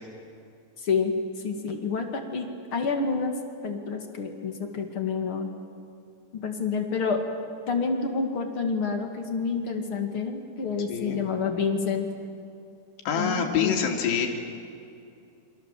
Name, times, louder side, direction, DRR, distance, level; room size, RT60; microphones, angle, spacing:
voice 1, 0.8-1.2 1.4-3.3 3.6-5.5 6.3-7.3 7.7-12.1 13.1-13.7, left 5 dB, 45° left, 4 dB, 2.0 m, -28 dB
voice 2, 10.9-11.2 13.1-14.3, left 7 dB, 70° left, 2 dB, 4.7 m, -26 dB
28.5 x 25.5 x 7.6 m, 2.6 s
omnidirectional pair, 5.2 m